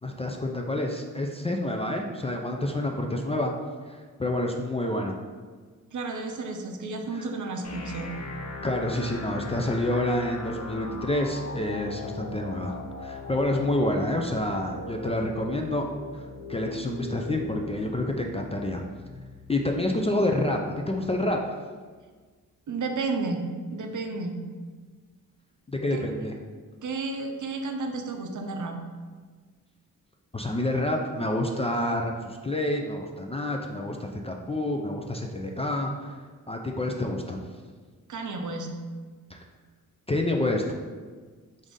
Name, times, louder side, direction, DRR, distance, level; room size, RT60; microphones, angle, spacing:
voice 1, 0.0-3.5 3.9-5.2 7.1-7.2 8.6-15.9 16.5-18.8 19.5-21.5 25.7-26.3 30.3-36.2 36.5-37.4 39.3-39.4 40.1-40.6, left 1 dB, 20° left, 1 dB, 0.3 m, -28 dB
voice 2, 5.9-8.2 22.7-24.4 25.9-26.0 26.8-28.8 38.1-38.7, right 3 dB, 60° right, 4 dB, 0.6 m, -32 dB
sound 1, 7.6-21.6, left 3 dB, 50° left, 0.8 m, -40 dB
4.8 x 2.6 x 3.7 m, 1.5 s
wide cardioid pair, 85°, 35 cm